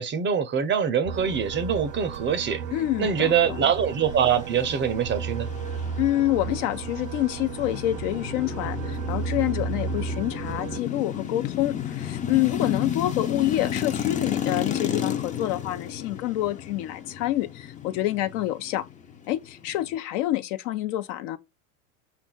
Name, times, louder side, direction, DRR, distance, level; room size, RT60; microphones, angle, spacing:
voice 1, 0.0-2.6 3.0-5.5, right 7 dB, 25° right, 0.6 m, -24 dB
sound 1, 1.0-10.8, right 6 dB, 65° right, 0.7 m, -34 dB
voice 2, 2.7-3.7 6.0-18.9 19.3-21.4, left 15 dB, 60° left, 0.7 m, -27 dB
sound 2, 3.2-20.0, left 9 dB, 20° left, 0.5 m, -33 dB
5.4 x 2.4 x 3.8 m
hypercardioid pair, 95°, 42 cm